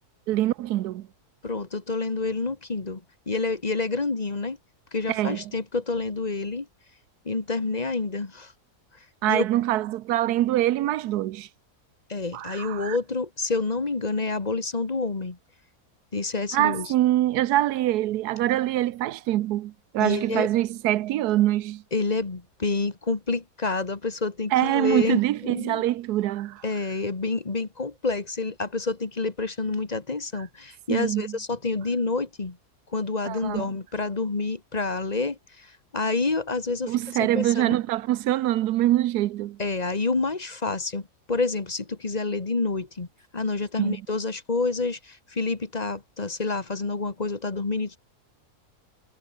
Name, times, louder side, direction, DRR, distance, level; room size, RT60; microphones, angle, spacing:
voice 1, 0.3-1.1 5.1-5.4 9.2-11.5 12.3-13.0 16.5-21.8 24.5-26.6 30.9-31.4 33.3-33.7 36.9-39.6 43.8-44.0, right 14 dB, 80° right, 1.2 m, -24 dB
voice 2, 1.4-4.6 4.9-6.7 7.3-8.5 9.3-9.5 12.1-15.4 16.1-16.9 20.0-20.5 21.9-25.8 26.6-32.6 32.9-37.8 39.6-43.1 43.3-48.0, left 3 dB, 25° left, 1.7 m, -28 dB
omnidirectional pair, 1.7 m